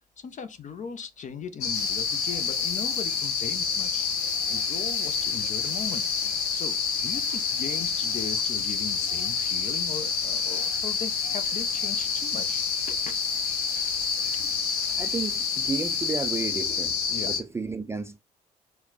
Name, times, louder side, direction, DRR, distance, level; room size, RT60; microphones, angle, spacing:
voice 1, 0.2-4.1 4.5-6.0 6.5-13.1 13.8-13.9 17.1-17.3, left 6 dB, 40° left, 0.7 m, -39 dB
sound 1, 1.6-17.4, left 6 dB, 75° left, 0.6 m, -28 dB
sound 2, 1.7-17.2, right 4 dB, 85° right, 0.8 m, -46 dB
voice 2, 15.0-17.0 17.3-18.2, right 4 dB, 15° right, 0.4 m, -32 dB
4.0 x 2.2 x 3.9 m
figure-of-eight pair, 45°, 20 cm